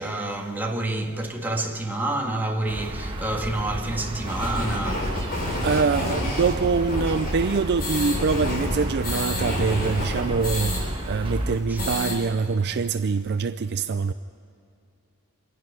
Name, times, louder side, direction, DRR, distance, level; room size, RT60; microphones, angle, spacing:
voice 1, 0.0-5.3 11.7-11.8, right 2 dB, 10° right, 1.6 m, -28 dB
sound 1, 2.7-11.6, right 1 dB, 25° right, 1.5 m, -32 dB
sound 2, 4.2-10.8 11.1-11.2 11.5-12.2, left 1 dB, 45° left, 4.5 m, -29 dB
voice 2, 5.6-14.1, right 5 dB, 50° right, 0.4 m, -24 dB
26.5 x 11.0 x 9.5 m
head